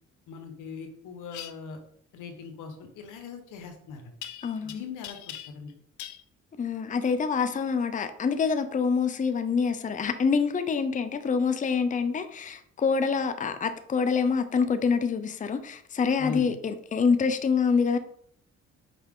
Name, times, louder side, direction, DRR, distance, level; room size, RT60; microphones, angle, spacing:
voice 1, 0.3-1.8 2.1-4.1 4.6-5.8 16.2-16.5, left 5 dB, 90° left, 1.2 m, -40 dB
sound 1, 1.3-1.5 4.2-4.7 5.0-5.7 6.0-6.2, left 11 dB, 70° left, 0.7 m, -40 dB
voice 2, 4.4-4.8 6.6-18.0, left 5 dB, 25° left, 0.6 m, -26 dB
5.6 x 4.8 x 3.7 m
cardioid pair, 90°, 30 cm